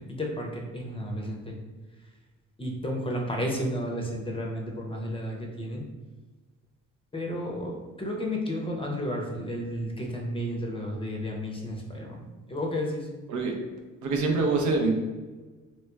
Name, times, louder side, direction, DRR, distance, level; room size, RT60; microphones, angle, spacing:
voice 1, 0.1-1.6 2.6-5.8 7.1-13.1, equal, 20° left, 0 dB, 0.6 m, -32 dB
voice 2, 14.0-14.9, right 3 dB, 75° right, 2 dB, 0.7 m, -24 dB
3.2 x 2.9 x 2.3 m, 1.3 s
cardioid pair, 90°, 30 cm